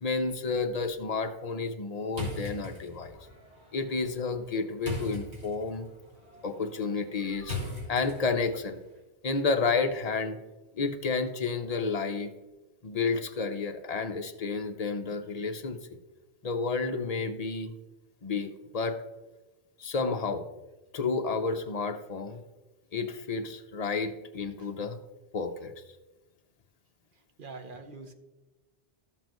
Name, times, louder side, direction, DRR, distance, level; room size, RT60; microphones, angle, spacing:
voice 1, 0.0-3.2 3.7-5.9 6.4-7.6 7.9-8.8 9.2-10.4 10.7-12.3 12.8-15.8 16.4-17.7 18.2-19.0 19.8-20.4 20.9-22.4 22.9-25.0 25.3-25.7, left 4 dB, 40° left, 6 dB, 0.7 m, -31 dB
sound 1, 2.1-8.6, left 3 dB, 90° right, 2.5 m, -40 dB
voice 2, 27.4-28.1, right 3 dB, 55° right, 6 dB, 0.9 m, -43 dB
13.0 x 7.3 x 3.0 m, 1.1 s
omnidirectional pair, 1.1 m